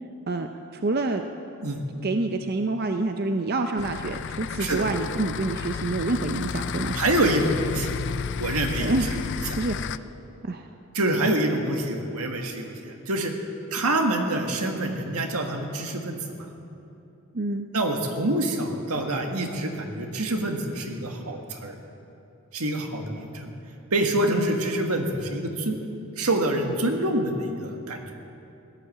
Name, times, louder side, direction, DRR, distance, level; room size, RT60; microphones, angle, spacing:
voice 1, 0.7-1.2 2.0-6.9 8.8-9.2 9.5-9.7 10.4-10.7 17.3-17.7 24.3-24.5, right 2 dB, 45° right, 6 dB, 0.6 m, -27 dB
sound 1, 3.8-10.0, left 6 dB, 55° left, 0.4 m, -32 dB
voice 2, 6.9-7.9 8.3-9.6 10.9-13.3 13.7-16.5 17.7-21.8 22.5-23.5 23.9-25.8 26.2-28.1, right 1 dB, 80° right, 3 dB, 1.7 m, -26 dB
16.5 x 11.0 x 7.7 m, 2.8 s
head